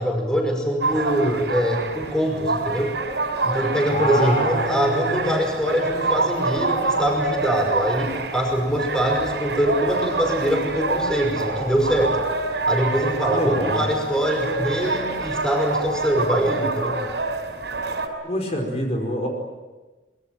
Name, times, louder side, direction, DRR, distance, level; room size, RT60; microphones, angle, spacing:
voice 1, 0.0-3.0 3.4-12.2 12.7-17.0, equal, 5° left, 2 dB, 5.5 m, -23 dB
sound 1, 0.8-18.1, right 3 dB, 70° right, 5.1 m, -26 dB
voice 2, 3.9-5.4 13.3-13.9 18.2-19.3, left 1 dB, 35° left, 2 dB, 5.0 m, -26 dB
25.5 x 23.0 x 9.1 m, 1.2 s
head